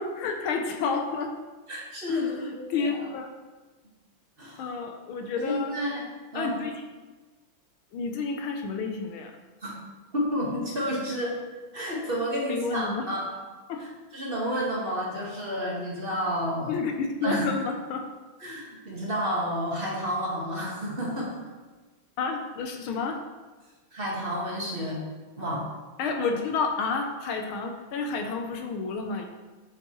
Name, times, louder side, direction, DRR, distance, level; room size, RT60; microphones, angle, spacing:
voice 1, 0.0-1.3 2.1-3.3 4.6-5.8 6.3-6.8 7.9-9.3 12.5-13.2 13.7-13.8 16.7-18.1 22.2-23.2 26.0-29.3, left 4 dB, 80° left, 4 dB, 1.6 m, -30 dB
voice 2, 1.7-2.7 4.4-4.6 5.4-6.0 6.3-6.6 9.6-9.8 10.1-11.4 11.7-13.2 14.1-16.7 17.2-17.5 18.4-21.3 23.9-25.0 25.4-25.6, equal, 30° right, -4 dB, 1.6 m, -30 dB
8.0 x 6.9 x 3.1 m, 1.3 s
omnidirectional pair, 2.3 m